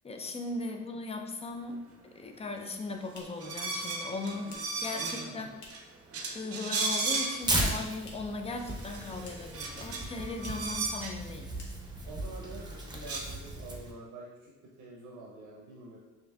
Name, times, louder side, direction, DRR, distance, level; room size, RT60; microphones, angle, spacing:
voice 1, 0.0-5.6 6.3-11.6, left 3 dB, 20° left, 5 dB, 0.4 m, -38 dB
sound 1, 3.1-6.0 6.3-7.3 7.5-8.5 8.7-9.7 9.9-10.0 10.3-10.8 11.1-11.2 11.5-12.1, left 2 dB, 70° left, 0.9 m, -54 dB
sound 2, 3.4-5.4 5.7-5.8 6.1-7.6 8.1-8.2 8.5-11.1 12.6-12.7 12.9-13.2, right 3 dB, 50° right, 0.6 m, -35 dB
voice 2, 4.9-5.5 12.0-16.0, right 2 dB, 85° right, -3 dB, 0.8 m, -47 dB
Tearing, 7.4-13.9, right 1 dB, 15° right, 0.7 m, -36 dB
5.6 x 2.7 x 2.3 m, 1.2 s
cardioid pair, 90°, 30 cm